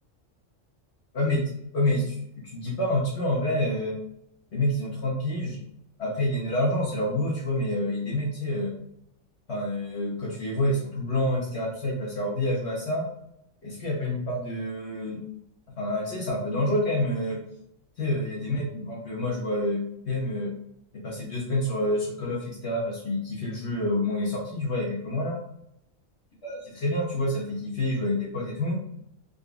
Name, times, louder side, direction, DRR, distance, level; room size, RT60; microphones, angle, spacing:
voice 1, 1.1-2.2 2.4-3.9 4.5-5.6 6.0-8.7 9.5-13.0 13.6-15.2 15.8-17.4 18.0-20.5 20.9-25.4 26.4-28.8, left 1 dB, 60° left, -5 dB, 1.1 m, -28 dB
3.8 x 2.4 x 2.4 m, 0.77 s
omnidirectional pair, 1.3 m